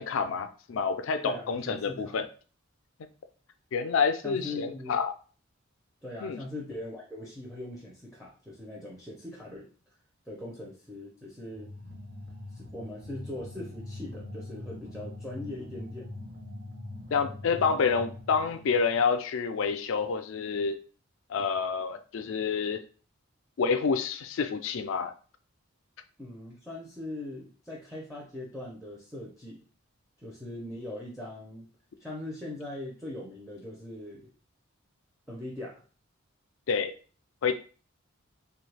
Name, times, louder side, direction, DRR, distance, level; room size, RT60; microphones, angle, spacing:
voice 1, 0.0-2.3 3.7-5.1 6.2-6.4 17.1-20.8 21.3-22.8 23.6-25.1 36.7-36.9 37.4-37.5, left 5 dB, 65° left, 10 dB, 0.4 m, -28 dB
voice 2, 1.2-2.2 4.2-4.9 6.0-9.7 10.3-11.7 12.5-16.1 26.2-29.6 30.2-31.7 32.0-34.3 35.3-35.8, left 1 dB, ahead, -3 dB, 0.5 m, -40 dB
sound 1, 11.5-18.9, left 1 dB, 45° right, 0.8 m, -43 dB
3.1 x 2.3 x 3.2 m, 0.39 s
head